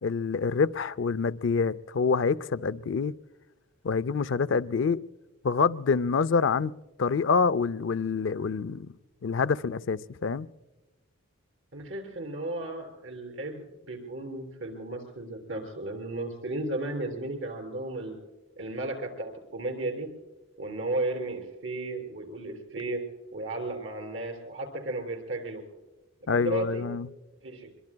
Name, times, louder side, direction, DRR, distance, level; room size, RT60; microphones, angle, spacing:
voice 1, 0.0-3.2 3.8-5.0 5.4-6.7 7.0-8.9 9.2-10.5 26.3-27.1, left 5 dB, 55° left, 0.4 m, -26 dB
voice 2, 11.7-18.2 18.6-20.1 20.6-23.1 23.3-25.6 26.3-26.9 27.4-27.7, right 2 dB, 60° right, 3.6 m, -34 dB
25.5 x 22.5 x 2.3 m
head